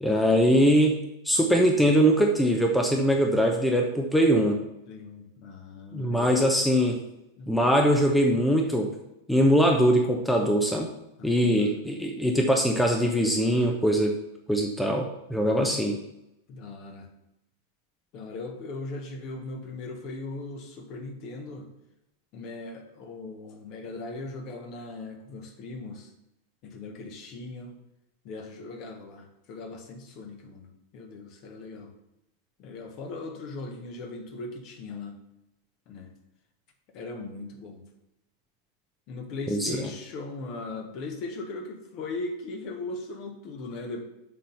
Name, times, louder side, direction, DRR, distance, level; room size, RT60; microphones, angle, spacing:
voice 1, 0.0-4.6 5.9-7.0 7.5-8.9 9.3-10.9 11.2-14.1 14.5-16.0 39.5-39.8, equal, 5° left, 2 dB, 0.9 m, -22 dB
voice 2, 4.9-6.5 7.4-7.6 11.2-11.9 16.5-17.1 18.1-21.7 22.3-26.1 26.6-27.8 28.2-31.9 32.6-35.2 35.9-36.1 36.9-37.8 39.1-44.0, left 3 dB, 40° left, 4 dB, 1.5 m, -39 dB
7.4 x 4.2 x 6.9 m, 0.87 s
figure-of-eight pair, 90°, 0 cm